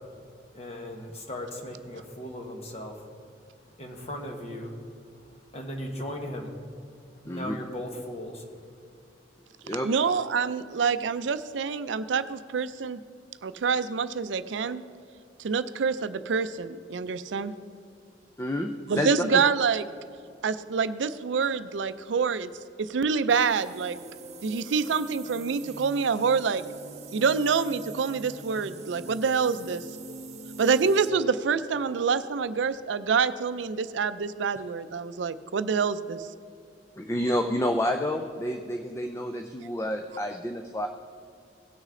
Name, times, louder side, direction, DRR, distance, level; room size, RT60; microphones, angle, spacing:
voice 1, 0.5-2.9 3.8-4.8 5.5-6.6 7.2-8.4, equal, 35° left, 2 dB, 1.3 m, -37 dB
voice 2, 9.8-13.0 13.4-14.8 15.4-17.5 18.9-19.8 20.4-22.5 22.8-24.0 24.4-26.6 27.1-29.8 30.6-36.3, right 5 dB, 80° right, 13 dB, 0.4 m, -26 dB
voice 3, 18.4-19.4 37.0-40.9, left 1 dB, 15° left, 5 dB, 0.4 m, -29 dB
sound 1, 23.3-31.1, right 3 dB, 35° right, 0.6 m, -43 dB
17.5 x 6.4 x 3.7 m, 2.4 s
head